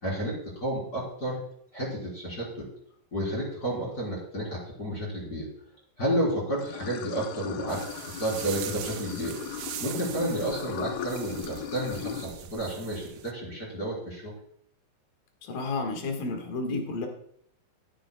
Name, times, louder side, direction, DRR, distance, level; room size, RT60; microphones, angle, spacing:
voice 1, 0.0-1.4 1.7-2.7 3.1-5.5 6.0-9.4 9.8-14.3, right 1 dB, 25° left, -4 dB, 3.9 m, -31 dB
Water / Sink (filling or washing), 6.6-12.3, left 10 dB, 90° left, 2.6 m, -38 dB
sound 1, 7.7-13.3, right 11 dB, 80° right, 2.1 m, -41 dB
voice 2, 15.4-17.1, left 3 dB, 70° left, 3 dB, 3.3 m, -31 dB
15.5 x 10.0 x 2.3 m, 0.68 s
omnidirectional pair, 4.2 m